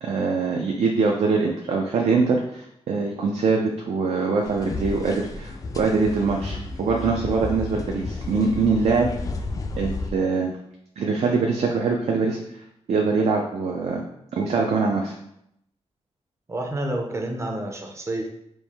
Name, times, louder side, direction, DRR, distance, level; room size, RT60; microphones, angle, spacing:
voice 1, 0.0-9.1 9.8-10.5 11.0-12.4 12.9-14.0 14.3-15.1, right 4 dB, 70° right, 0 dB, 0.5 m, -23 dB
sound 1, 4.4-10.1, left 3 dB, 30° left, 0.4 m, -32 dB
voice 2, 16.5-18.3, right 1 dB, 25° right, 3 dB, 0.5 m, -29 dB
4.6 x 2.6 x 3.5 m, 0.76 s
wide cardioid pair, 140°, 11 cm